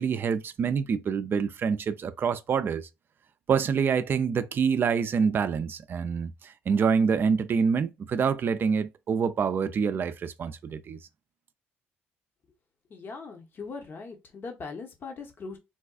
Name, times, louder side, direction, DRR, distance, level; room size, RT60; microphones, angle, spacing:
voice 1, 0.0-2.8 3.5-11.0, right 6 dB, 50° right, 0.4 m, -26 dB
voice 2, 12.9-15.6, left 4 dB, 50° left, 0.9 m, -40 dB
4.1 x 2.2 x 2.4 m
supercardioid pair, 70°, 5 cm